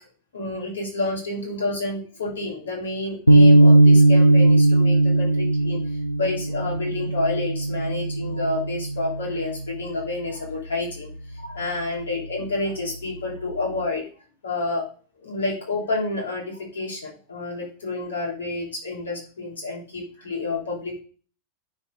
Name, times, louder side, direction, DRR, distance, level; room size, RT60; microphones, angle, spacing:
voice 1, 0.3-5.8 6.2-14.0 14.4-14.8 15.2-21.0, left 2 dB, 70° left, -2 dB, 3.1 m, -29 dB
sound 1, 3.3-9.7, right 2 dB, 85° left, 0.4 m, -18 dB
9.6 x 4.4 x 3.8 m, 0.40 s
figure-of-eight pair, 90°, 0 cm